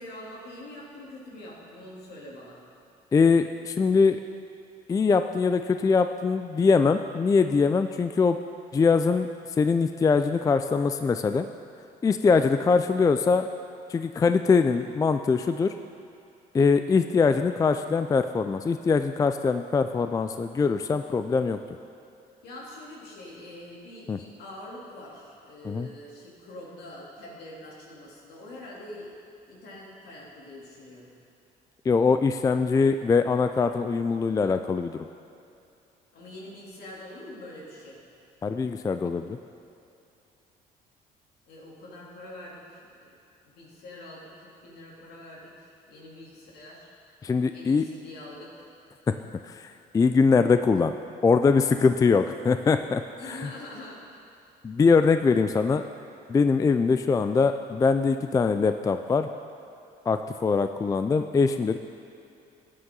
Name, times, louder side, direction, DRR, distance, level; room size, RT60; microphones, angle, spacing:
voice 1, 0.0-2.6 22.4-29.1 29.5-31.1 36.1-38.0 41.5-43.1 43.4-46.9 47.5-48.7 53.2-54.3, left 1 dB, 70° left, -4 dB, 3.1 m, -44 dB
voice 2, 3.1-4.2 4.9-8.4 8.7-9.3 9.6-11.5 12.0-13.5 13.9-15.7 16.5-21.6 24.1-24.2 25.6-25.9 31.9-35.1 38.4-39.4 47.2-47.8 49.4-49.7 49.9-50.9 51.2-53.5 54.6-55.8 56.3-59.3 60.1-61.8, left 4 dB, 20° left, 9 dB, 0.4 m, -22 dB
14.5 x 9.7 x 3.9 m, 2.6 s
cardioid pair, 110°, 17 cm